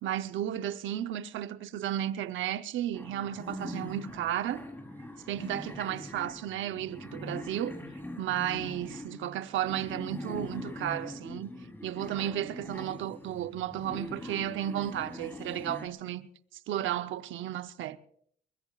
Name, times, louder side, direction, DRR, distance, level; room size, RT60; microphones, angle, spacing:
voice 1, 0.0-4.6 5.3-7.8 8.2-11.5 11.8-16.3 16.7-18.0, right 11 dB, 75° right, 0.8 m, -33 dB
sound 1, 2.9-15.9, left 1 dB, 10° left, 3.5 m, -42 dB
23.0 x 21.5 x 2.4 m
cardioid pair, 90°, 20 cm